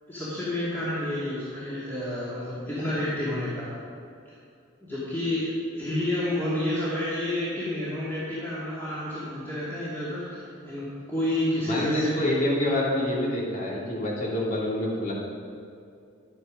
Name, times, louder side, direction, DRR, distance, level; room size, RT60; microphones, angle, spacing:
voice 1, 0.1-3.7 4.9-12.1, left 1 dB, 10° left, -11 dB, 2.4 m, -30 dB
voice 2, 11.7-15.1, left 1 dB, 35° left, -5 dB, 2.5 m, -26 dB
11.5 x 9.5 x 5.2 m, 2.5 s
head